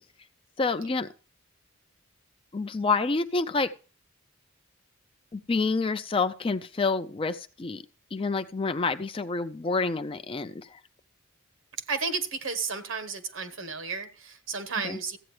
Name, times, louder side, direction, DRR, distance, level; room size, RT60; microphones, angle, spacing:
voice 1, 0.6-1.1 2.5-3.7 5.3-7.8 8.1-10.8 14.8-15.0, left 4 dB, 25° left, 0.4 m, -28 dB
voice 2, 11.9-15.2, right 5 dB, 65° right, 1.2 m, -33 dB
14.5 x 8.7 x 3.2 m
head